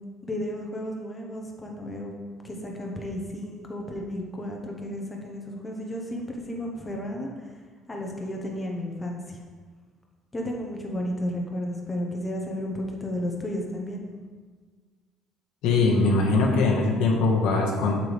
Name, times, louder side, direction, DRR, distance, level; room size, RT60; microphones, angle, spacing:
voice 1, 0.2-2.1 2.4-7.5 7.9-9.4 10.3-14.1, left 1 dB, 15° left, 0 dB, 1.0 m, -33 dB
voice 2, 15.6-18.0, left 3 dB, 80° left, -1 dB, 1.6 m, -21 dB
7.6 x 6.9 x 3.4 m, 1.5 s
cardioid pair, 140°, 0 cm